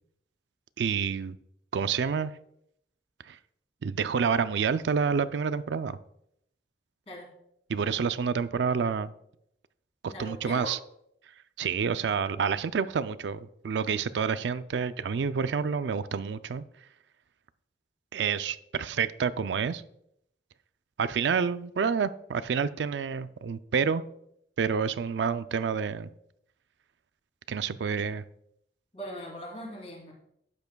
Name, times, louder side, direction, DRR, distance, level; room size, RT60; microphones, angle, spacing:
voice 1, 0.8-1.4 1.7-2.3 3.3-3.4 3.8-6.0 7.7-9.1 10.0-10.8 11.6-16.6 18.1-19.8 21.0-24.0 24.6-26.1 27.5-28.2, right 6 dB, 85° right, 13 dB, 0.4 m, -28 dB
voice 2, 10.1-10.8 28.9-30.1, equal, 35° left, -2 dB, 2.9 m, -40 dB
12.0 x 8.2 x 2.3 m, 0.74 s
head